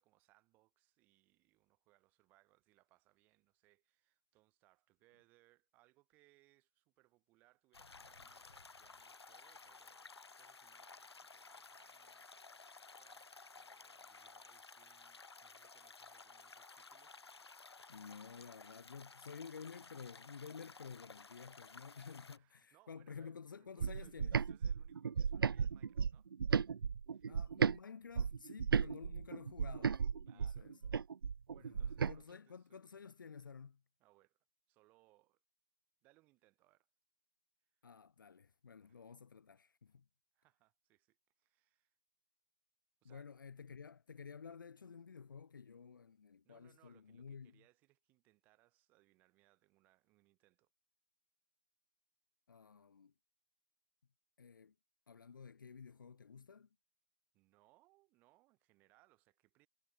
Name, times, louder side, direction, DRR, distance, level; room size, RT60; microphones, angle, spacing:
voice 1, 0.0-17.5 21.9-26.3 27.1-27.4 30.3-30.7 31.5-32.8 34.0-35.4 36.0-36.9 37.7-37.8 38.8-39.0 40.3-42.0 43.0-43.3 46.4-50.7 57.3-59.7, right 20 dB, 10° right, 5.6 m, -72 dB
sound 1, 7.7-22.4, left 4 dB, 80° left, 2.5 m, -56 dB
voice 2, 17.9-24.4 27.3-30.8 31.6-33.8 37.8-40.1 43.0-47.6 52.5-53.1 54.4-54.7 55.1-56.7, left 6 dB, 50° left, 1.0 m, -52 dB
sound 2, 23.8-27.8 28.2-32.2, right 6 dB, 60° right, 0.4 m, -35 dB
hypercardioid pair, 170°, 13 cm